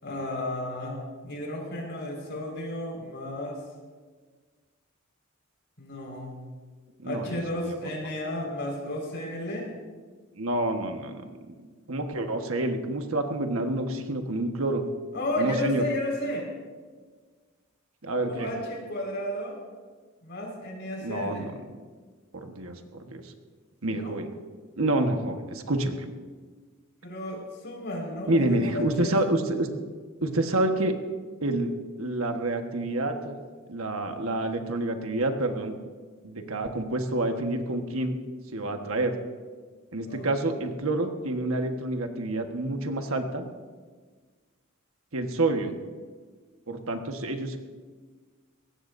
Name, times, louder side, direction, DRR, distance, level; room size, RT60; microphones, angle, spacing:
voice 1, 0.0-3.6 5.8-6.4 7.0-9.7 15.1-16.5 18.2-19.6 20.2-21.5 23.9-24.2 27.0-29.1 40.1-40.3, left 1 dB, 60° left, -1 dB, 5.1 m, -33 dB
voice 2, 7.0-7.8 10.4-11.2 11.9-14.8 15.4-15.8 18.0-18.5 21.0-21.5 22.3-23.3 23.8-24.3 24.8-26.1 28.3-29.7 30.2-31.0 31.4-31.7 32.0-33.4 33.7-35.8 36.2-38.2 38.5-39.2 39.9-43.5 45.1-45.7 46.7-47.6, right 2 dB, 85° right, 5 dB, 1.4 m, -28 dB
21.0 x 18.0 x 2.7 m, 1.5 s
head